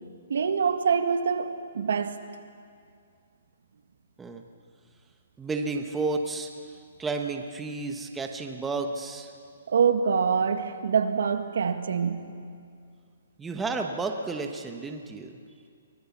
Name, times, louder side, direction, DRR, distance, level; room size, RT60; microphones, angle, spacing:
voice 1, 0.3-2.2 9.7-12.3, right 6 dB, 75° right, 8 dB, 1.7 m, -25 dB
voice 2, 5.4-6.5 7.0-9.3 13.4-15.3, right 3 dB, 10° right, 4 dB, 1.1 m, -31 dB
23.5 x 20.0 x 7.2 m, 2.3 s
hypercardioid pair, 165°, 0 cm